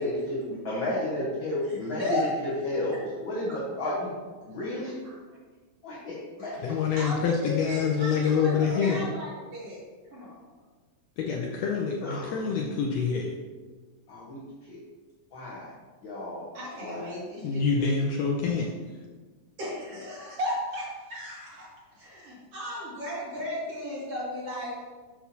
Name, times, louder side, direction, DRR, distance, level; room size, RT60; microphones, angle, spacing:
voice 1, 0.0-4.1 4.5-4.9 5.8-6.5 7.7-8.1 12.0-12.7 14.1-14.8 15.3-15.7 16.0-16.5 16.8-17.2, left 1 dB, 60° left, -6 dB, 1.3 m, -33 dB
voice 2, 1.7-2.3 5.3-5.4 6.7-8.5 8.8-9.8 10.1-10.4 16.5-17.9 19.6-21.7 21.9-24.8, left 1 dB, 50° right, -7 dB, 3.0 m, -35 dB
voice 3, 6.6-9.0 11.2-13.3 17.4-18.7, left 5 dB, 80° left, 0 dB, 1.5 m, -26 dB
8.0 x 5.6 x 2.8 m, 1.4 s
omnidirectional pair, 3.7 m